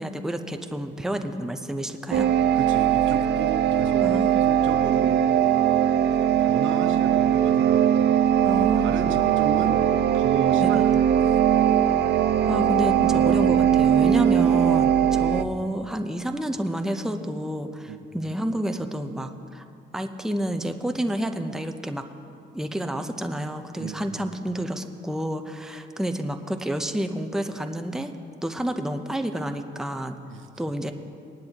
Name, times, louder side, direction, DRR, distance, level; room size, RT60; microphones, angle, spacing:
voice 1, 0.0-2.3 4.0-4.4 8.4-9.0 10.6-10.8 12.4-19.6 19.9-22.1 22.5-28.1 28.4-30.2 30.6-30.9, right 1 dB, ahead, 6 dB, 0.7 m, -29 dB
sound 1, 2.1-15.4, right 9 dB, 55° right, 0.5 m, -20 dB
voice 2, 2.5-5.2 6.1-9.8 10.1-11.4 15.1-15.4 17.9-18.0 23.8-24.1 30.3-30.5, right 6 dB, 75° right, 7 dB, 1.0 m, -34 dB
19.5 x 10.5 x 2.9 m, 2.5 s
cardioid pair, 90°, 20 cm